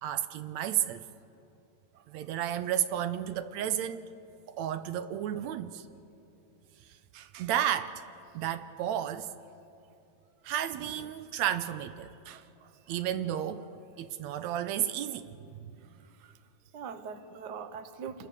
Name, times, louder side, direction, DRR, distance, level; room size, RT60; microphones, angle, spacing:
voice 1, 0.0-1.0 2.1-4.0 4.5-5.9 6.9-8.0 8.3-9.3 10.4-12.4 12.9-15.4, right 11 dB, 80° right, 2.0 m, -32 dB
voice 2, 12.3-12.9 16.7-18.3, right 6 dB, 60° right, 1.0 m, -43 dB
27.5 x 21.0 x 6.7 m
omnidirectional pair, 3.3 m